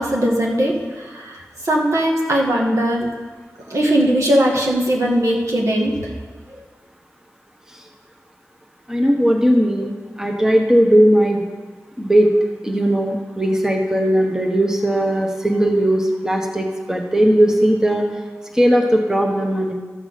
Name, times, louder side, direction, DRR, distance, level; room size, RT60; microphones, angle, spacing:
voice 1, 0.0-3.1 3.7-5.9, right 1 dB, 70° right, -1 dB, 1.9 m, -19 dB
voice 2, 8.9-9.9 10.2-11.4 12.0-12.3 12.6-18.0 18.5-19.7, equal, 10° right, 1 dB, 1.2 m, -17 dB
13.5 x 6.0 x 6.6 m, 1.4 s
wide cardioid pair, 80°, 5 cm